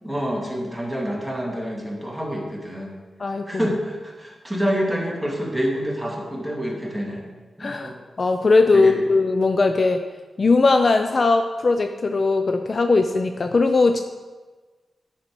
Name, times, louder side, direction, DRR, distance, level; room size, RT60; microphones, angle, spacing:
voice 1, 0.0-2.9 3.5-7.2 7.6-8.0 8.7-8.9, equal, 5° right, -2 dB, 1.8 m, -27 dB
voice 2, 3.2-3.6 7.6-7.9 8.2-10.0 10.4-14.0, left 3 dB, 45° left, 7 dB, 0.4 m, -19 dB
9.3 x 5.5 x 4.5 m, 1.3 s
wide cardioid pair, 110°, 0 cm